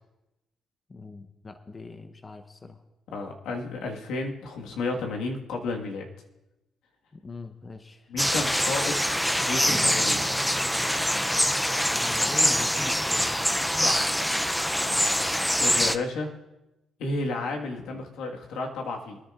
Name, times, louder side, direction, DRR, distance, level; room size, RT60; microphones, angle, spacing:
voice 1, 0.9-2.8 7.1-8.1 11.8-13.4, left 3 dB, 30° left, 8 dB, 0.8 m, -41 dB
voice 2, 3.1-6.0 8.1-9.0 9.4-10.2 13.7-14.1 15.6-16.3 17.0-19.2, left 3 dB, 85° left, 1 dB, 1.6 m, -32 dB
sound 1, 8.2-16.0, equal, 5° left, 0.4 m, -24 dB
Acoustic guitar / Strum, 9.6-14.1, right 3 dB, 40° right, 1.9 m, -43 dB
23.0 x 10.5 x 2.5 m, 0.96 s
cardioid pair, 90°, 0 cm